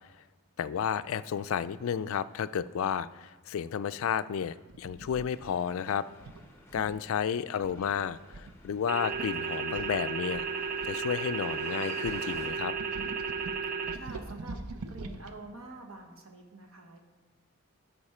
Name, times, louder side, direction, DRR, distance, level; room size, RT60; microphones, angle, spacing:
voice 1, 0.6-6.1 6.7-10.4 10.9-12.7, left 8 dB, 70° left, 14 dB, 0.3 m, -32 dB
sound 1, 4.7-5.3 6.2-7.1 7.6-7.9 8.3-8.5 8.8-8.9 9.1-9.3 9.8-11.6 12.0-15.3, right 3 dB, 85° right, 0.6 m, -43 dB
sound 2, 5.3-12.5, left 1 dB, 10° left, 0.9 m, -52 dB
sound 3, 8.9-13.9, right 5 dB, 40° right, 0.4 m, -34 dB
voice 2, 13.7-14.6 14.9-17.0, right 2 dB, 70° right, 4 dB, 1.2 m, -47 dB
13.0 x 5.2 x 4.3 m, 1.3 s
head